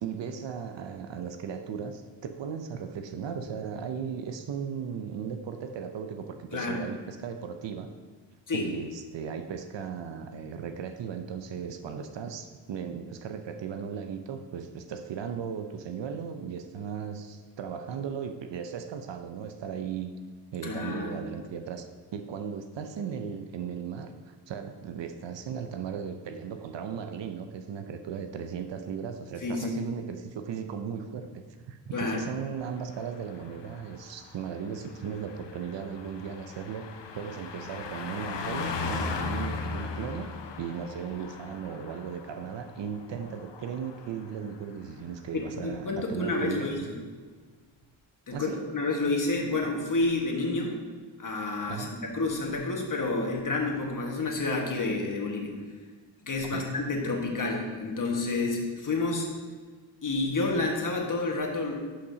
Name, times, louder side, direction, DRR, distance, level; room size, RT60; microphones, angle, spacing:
voice 1, 0.0-7.9 8.5-20.1 20.5-36.9 37.1-46.9 48.3-48.7 51.7-52.0 56.5-56.7, right 7 dB, 75° right, 7 dB, 0.6 m, -37 dB
voice 2, 6.5-6.8 8.5-8.7 20.6-21.1 29.4-29.8 31.9-32.2 45.3-46.8 48.3-50.8 51.2-55.5 56.2-59.3 60.0-61.7, left 3 dB, 45° left, 0 dB, 1.5 m, -29 dB
Car passing by, 32.7-44.6 44.9-45.1, left 4 dB, 70° left, 0.8 m, -38 dB
11.0 x 5.6 x 2.7 m, 1.5 s
cardioid pair, 75°, 44 cm